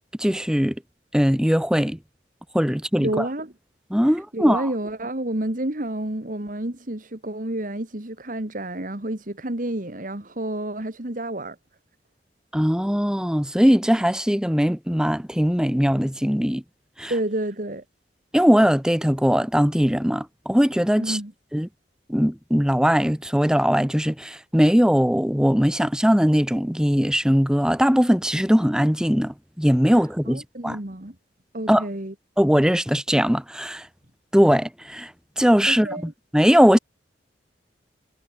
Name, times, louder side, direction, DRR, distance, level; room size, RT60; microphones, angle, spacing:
voice 1, 0.2-0.7 1.1-2.0 2.5-3.2 3.9-4.7 12.5-16.6 17.0-17.1 18.3-21.2 21.5-21.7 22.1-30.8 31.7-31.9 32.4-33.9 34.3-35.1 35.4-36.8, equal, 5° right, 1.3 m, -20 dB
voice 2, 3.0-3.5 4.0-11.6 17.1-17.8 21.0-21.3 29.9-31.2 31.5-32.1 35.7-36.1, right 1 dB, 50° right, 2.2 m, -30 dB
head